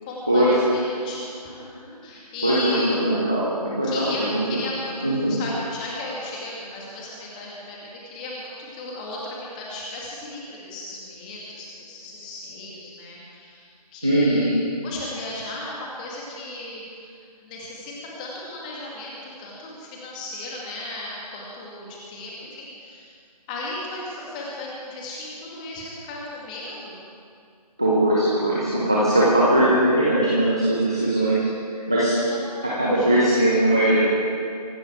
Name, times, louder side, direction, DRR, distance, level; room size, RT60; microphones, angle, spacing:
voice 1, 0.0-3.0 3.8-17.1 17.4-23.1 23.5-27.0 32.1-33.1, left 2 dB, 10° left, -4 dB, 2.1 m, -36 dB
voice 2, 2.4-4.6 5.0-5.3 14.0-14.5 27.8-32.2 32.6-34.0, right 1 dB, 5° right, -7 dB, 0.5 m, -20 dB
24.0 x 11.5 x 4.6 m, 2.3 s
figure-of-eight pair, 165°, 21 cm